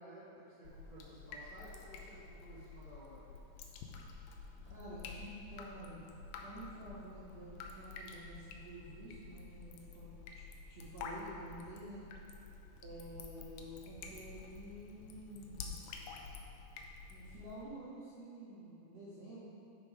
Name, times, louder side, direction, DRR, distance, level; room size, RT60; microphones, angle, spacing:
voice 1, 0.0-3.2, right 1 dB, 35° left, -11 dB, 2.1 m, -54 dB
Drip, 0.6-17.6, left 4 dB, 80° left, 2.5 m, -50 dB
voice 2, 4.6-6.0 6.4-10.4 10.7-12.1 12.8-15.8 17.1-19.4, right 1 dB, 55° right, -11 dB, 1.9 m, -50 dB
13.0 x 5.5 x 5.0 m, 2.8 s
omnidirectional pair, 5.4 m